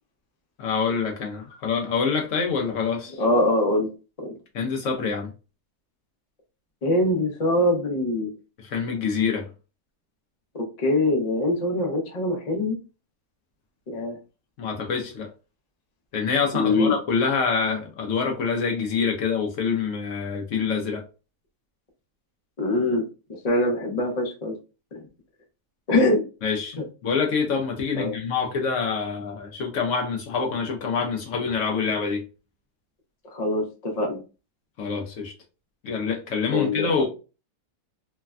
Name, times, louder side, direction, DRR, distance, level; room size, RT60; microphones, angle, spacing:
voice 1, 0.6-3.2 4.5-5.3 8.6-9.5 14.6-15.3 16.1-21.0 26.4-32.2 34.8-35.3 35.8-37.1, left 5 dB, 65° left, 0.8 m, -26 dB
voice 2, 3.2-3.9 4.2-4.3 6.8-8.3 10.5-12.8 13.9-14.2 16.5-16.9 22.6-23.0 23.4-24.5 24.9-25.0 25.9-26.2 28.0-28.2 33.3-34.2 36.5-36.9, left 1 dB, 85° left, 0.3 m, -23 dB
3.2 x 2.1 x 2.3 m
omnidirectional pair, 1.8 m